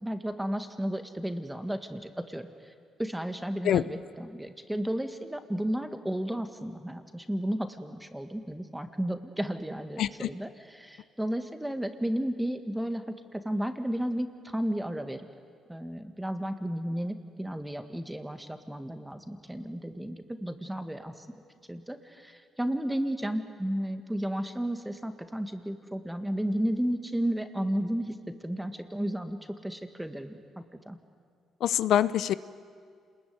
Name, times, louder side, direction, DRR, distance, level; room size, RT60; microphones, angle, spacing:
voice 1, 0.0-2.5 3.0-15.2 15.7-21.3 21.7-28.2 28.4-31.0, right 1 dB, 5° right, 7 dB, 1.9 m, -33 dB
voice 2, 10.0-10.3 31.6-32.3, left 11 dB, 75° left, 16 dB, 0.7 m, -25 dB
27.5 x 21.0 x 9.7 m, 2.1 s
cardioid pair, 90°, 0 cm